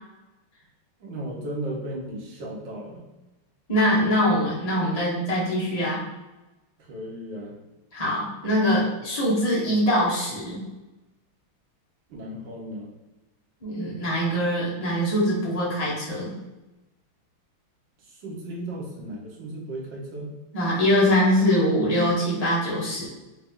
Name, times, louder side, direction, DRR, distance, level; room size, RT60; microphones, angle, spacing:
voice 1, 1.0-3.0 6.9-7.6 12.1-12.9 18.0-20.3, right 1 dB, 65° right, -2 dB, 1.6 m, -35 dB
voice 2, 3.7-6.0 7.9-10.6 13.6-16.3 20.5-23.1, equal, 25° left, -6 dB, 1.1 m, -23 dB
4.5 x 2.8 x 3.6 m, 1.0 s
omnidirectional pair, 2.3 m